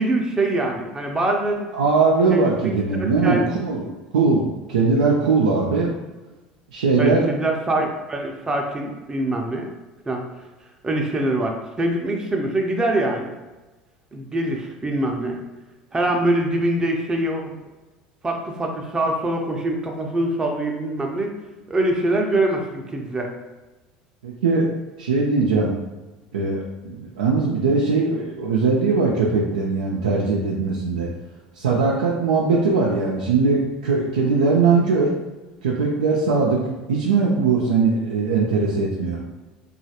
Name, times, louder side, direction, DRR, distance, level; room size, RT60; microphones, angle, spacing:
voice 1, 0.0-1.7 2.3-3.6 7.0-9.7 10.1-10.2 10.8-13.3 14.1-15.4 15.9-17.6 18.2-21.3 21.7-23.3, right 1 dB, 20° right, 1 dB, 0.5 m, -24 dB
voice 2, 1.7-5.9 6.7-7.3 24.2-24.6 25.0-25.7 26.3-31.1 31.6-35.2 35.6-39.2, right 4 dB, 85° right, -4 dB, 0.4 m, -20 dB
3.0 x 2.4 x 2.8 m, 1.1 s
hypercardioid pair, 75°, 4 cm